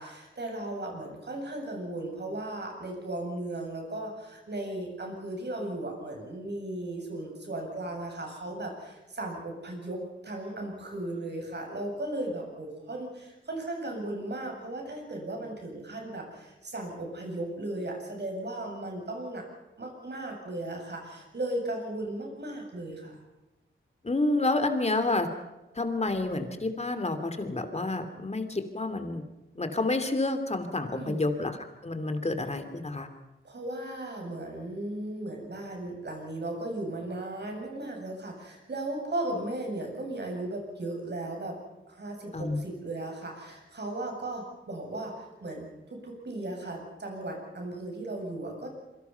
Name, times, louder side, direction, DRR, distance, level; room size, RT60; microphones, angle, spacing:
voice 1, 0.0-19.4 19.8-23.2 30.9-31.3 33.4-41.6 41.9-48.7, right 1 dB, 55° right, 1 dB, 8.0 m, -36 dB
voice 2, 24.0-25.3 25.7-29.2 29.5-31.6 31.8-33.1 42.3-42.6, left 2 dB, 30° left, 8 dB, 2.8 m, -29 dB
27.0 x 24.0 x 5.9 m, 1.0 s
wide cardioid pair, 120°, 21 cm